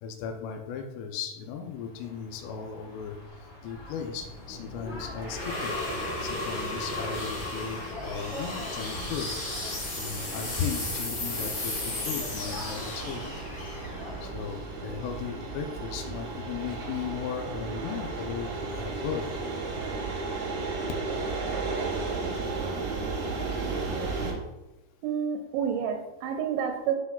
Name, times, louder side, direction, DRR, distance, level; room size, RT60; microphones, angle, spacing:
voice 1, 0.0-3.2 3.6-5.7 6.2-9.3 9.9-13.2 14.2-19.4, left 7 dB, 80° left, 4 dB, 2.7 m, -36 dB
sound 1, 1.5-14.3, left 1 dB, 65° left, 0.7 m, -44 dB
sound 2, 3.8-15.0, left 2 dB, 35° left, 2.5 m, -35 dB
sound 3, 5.5-24.3, right 3 dB, 65° right, 1.8 m, -35 dB
voice 2, 25.0-27.0, right 7 dB, 80° right, 3 dB, 2.6 m, -29 dB
10.0 x 5.8 x 2.3 m, 1.0 s
omnidirectional pair, 5.0 m